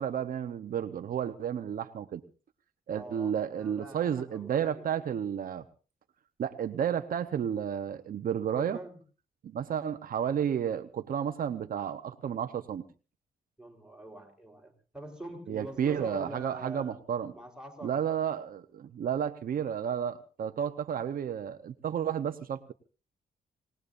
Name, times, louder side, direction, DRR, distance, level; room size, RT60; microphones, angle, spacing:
voice 1, 0.0-2.2 2.9-5.6 6.4-8.8 9.4-12.8 15.5-17.3 17.8-22.7, right 8 dB, 65° right, 8 dB, 0.9 m, -32 dB
voice 2, 2.9-4.8 8.4-9.0 13.6-17.0 17.3-18.0, right 1 dB, 5° right, 0 dB, 3.9 m, -45 dB
26.0 x 19.0 x 2.6 m, 0.36 s
wide cardioid pair, 125°, 16 cm